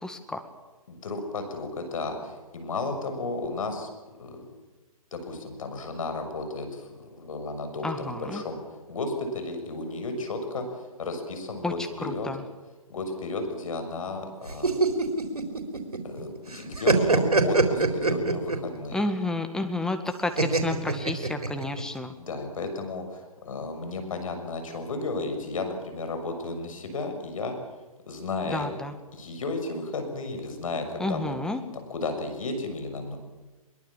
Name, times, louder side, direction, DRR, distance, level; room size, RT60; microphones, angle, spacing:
voice 1, 0.0-0.4 7.8-8.4 11.6-12.4 18.9-22.1 28.5-28.9 31.0-31.6, left 2 dB, 5° left, 7 dB, 1.9 m, -31 dB
voice 2, 0.9-3.9 4.2-4.5 5.1-8.6 8.9-12.3 12.9-14.8 16.0-19.0 22.2-27.6 28.1-28.7 29.1-31.4 31.7-33.2, left 3 dB, 65° left, 6 dB, 6.7 m, -33 dB
sound 1, 14.5-16.2 16.5-18.7 20.4-21.8, right 3 dB, 90° right, 4.1 m, -23 dB
23.0 x 22.5 x 7.5 m, 1.2 s
hypercardioid pair, 135°, 19 cm